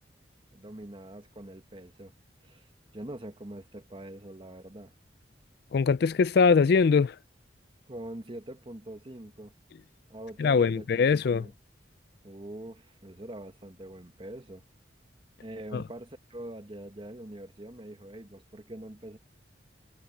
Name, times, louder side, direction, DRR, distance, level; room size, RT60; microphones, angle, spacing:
voice 1, 0.5-2.1 2.4-2.7 2.9-4.9 7.9-9.5 10.1-11.5 12.2-14.6 15.4-19.2, right 1 dB, 30° right, 1.3 m, -43 dB
voice 2, 5.7-7.2 10.4-11.5 15.7-15.8, left 5 dB, 60° left, 0.4 m, -22 dB
head